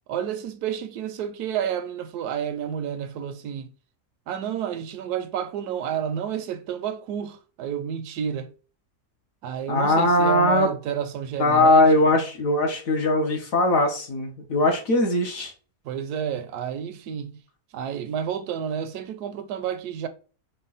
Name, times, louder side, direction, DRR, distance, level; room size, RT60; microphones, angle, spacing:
voice 1, 0.1-3.7 4.3-8.5 9.4-12.2 15.8-17.3 17.7-20.1, right 8 dB, 85° right, 1.2 m, -30 dB
voice 2, 9.7-10.7 11.4-15.5, left 2 dB, 60° left, 1.2 m, -20 dB
5.0 x 2.2 x 4.0 m
omnidirectional pair, 1.7 m